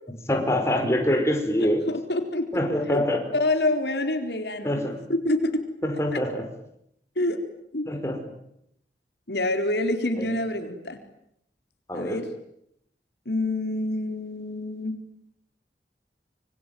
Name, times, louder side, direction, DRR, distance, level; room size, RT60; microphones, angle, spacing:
voice 1, 0.3-1.8 2.5-3.2 4.6-5.0 5.8-6.4 7.9-8.2 10.2-10.3 11.9-12.2, left 1 dB, 15° left, 3 dB, 5.2 m, -24 dB
voice 2, 1.9-2.5 2.9-3.0 3.3-4.8 5.1-5.6 6.1-6.2 7.2-7.4 7.7-7.9 9.3-11.0 11.9-12.3 13.3-15.0, left 1 dB, 75° left, 6 dB, 4.1 m, -26 dB
26.5 x 24.5 x 9.3 m, 0.77 s
head